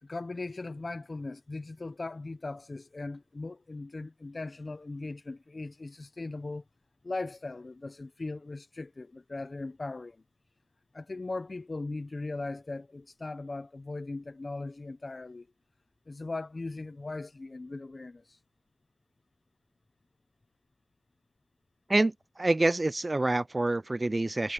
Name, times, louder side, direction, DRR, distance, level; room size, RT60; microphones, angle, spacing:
voice 1, 0.0-6.6 7.0-10.2 10.9-15.5 16.1-18.4, left 3 dB, 35° left, 0.6 m, -39 dB
voice 2, 22.4-24.5, right 2 dB, 25° right, 0.3 m, -26 dB
wide cardioid pair, 100°, 0 cm